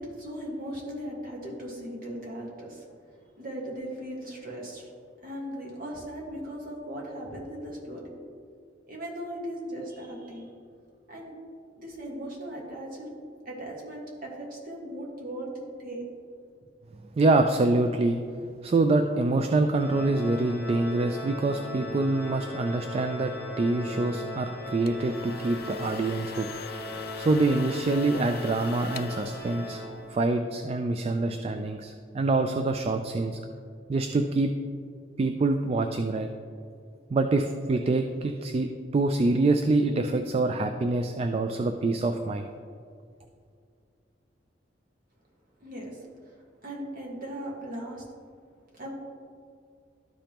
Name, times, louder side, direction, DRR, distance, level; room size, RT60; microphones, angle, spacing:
voice 1, 0.0-2.9 3.4-4.9 5.2-8.0 8.9-10.5 11.1-11.3 11.8-13.1 13.5-16.0 45.6-46.4 46.6-48.0 48.7-48.9, right 1 dB, 50° right, -3 dB, 1.7 m, -38 dB
voice 2, 17.1-18.2 18.6-26.5 26.9-29.8 30.1-33.4 33.9-34.5 35.2-36.3 37.1-42.5, right 2 dB, 35° right, 6 dB, 0.3 m, -25 dB
Organ, 19.7-30.5, left 1 dB, 5° right, 1.9 m, -38 dB
sound 1, 24.6-30.4, left 8 dB, 55° left, 0.3 m, -44 dB
12.5 x 5.1 x 3.0 m, 2.3 s
head